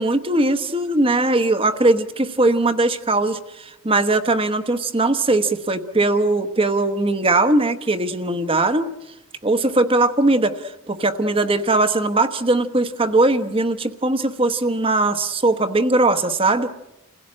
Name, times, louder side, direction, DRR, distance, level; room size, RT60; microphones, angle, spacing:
voice 1, 0.0-8.9 9.4-16.7, right 2 dB, 25° right, 10 dB, 1.1 m, -20 dB
28.5 x 16.5 x 8.6 m, 0.96 s
head